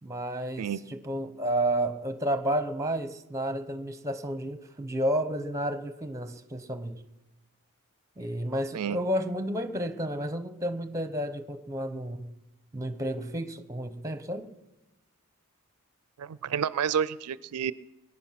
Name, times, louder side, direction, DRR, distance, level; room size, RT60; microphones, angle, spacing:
voice 1, 0.0-7.0 8.2-12.3 12.7-14.5, right 1 dB, 15° right, 9 dB, 0.8 m, -31 dB
voice 2, 16.2-17.7, right 8 dB, 85° right, 19 dB, 0.4 m, -29 dB
22.0 x 9.9 x 5.8 m, 1.0 s
head